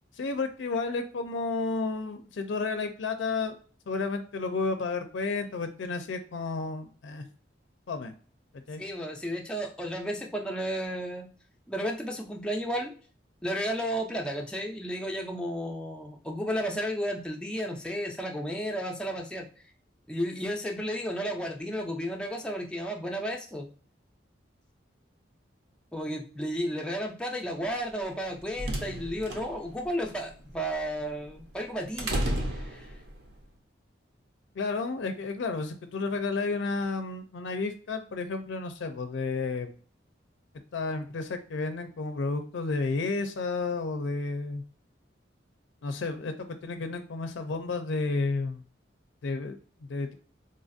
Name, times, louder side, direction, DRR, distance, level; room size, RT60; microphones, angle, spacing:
voice 1, 0.2-3.6 3.9-7.3 7.9-8.1 8.7-8.8 34.6-39.8 40.7-44.6 45.8-48.6 49.2-49.6 49.9-50.1, left 3 dB, 75° left, 7 dB, 0.4 m, -31 dB
voice 2, 8.8-11.3 11.7-12.9 13.4-19.5 20.1-23.7 25.9-32.4 32.6-32.9, equal, 5° left, 0 dB, 0.4 m, -33 dB
sound 1, 28.1-33.3, right 1 dB, 60° right, 0.7 m, -34 dB
3.9 x 2.4 x 2.5 m, 0.41 s
head